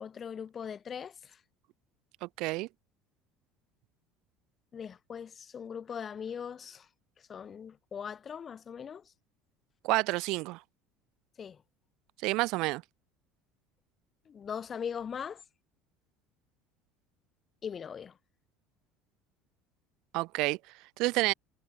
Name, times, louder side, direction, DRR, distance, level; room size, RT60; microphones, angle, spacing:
voice 1, 0.0-1.4 4.7-6.9 7.3-9.1 11.4-11.6 14.3-15.4 17.6-18.2, left 7 dB, 30° left, 1.3 m, -40 dB
voice 2, 2.2-2.7 9.8-10.6 12.2-12.8 20.1-20.6 21.0-21.3, right 22 dB, 65° right, 0.7 m, -29 dB
cardioid pair, 125°, 0 cm